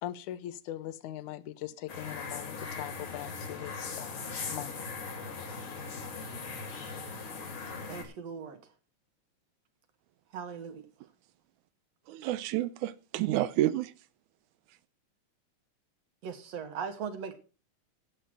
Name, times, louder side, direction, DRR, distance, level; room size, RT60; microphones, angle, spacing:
voice 1, 0.0-4.9, left 13 dB, 90° left, 2.3 m, -41 dB
sound 1, 1.9-8.0, left 4 dB, 60° left, 3.7 m, -39 dB
voice 2, 7.9-8.6 10.3-10.9 16.2-17.3, right 6 dB, 60° right, 2.6 m, -39 dB
voice 3, 12.1-13.9, right 14 dB, 90° right, 2.2 m, -29 dB
15.5 x 8.1 x 4.9 m
omnidirectional pair, 3.4 m